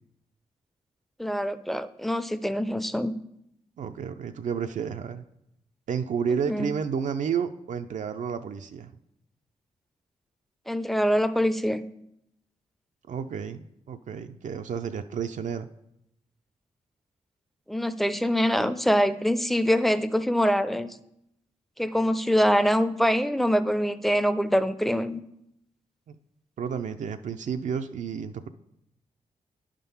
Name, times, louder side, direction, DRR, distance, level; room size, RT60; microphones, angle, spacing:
voice 1, 1.2-3.1 6.3-6.7 10.7-11.8 17.7-20.9 21.8-25.2, equal, ahead, 13 dB, 0.5 m, -24 dB
voice 2, 3.8-5.2 5.9-8.9 13.1-15.7 26.1-26.2 26.6-28.5, right 7 dB, 65° right, 7 dB, 0.5 m, -31 dB
10.0 x 3.7 x 5.6 m, 0.79 s
cardioid pair, 60°, 14 cm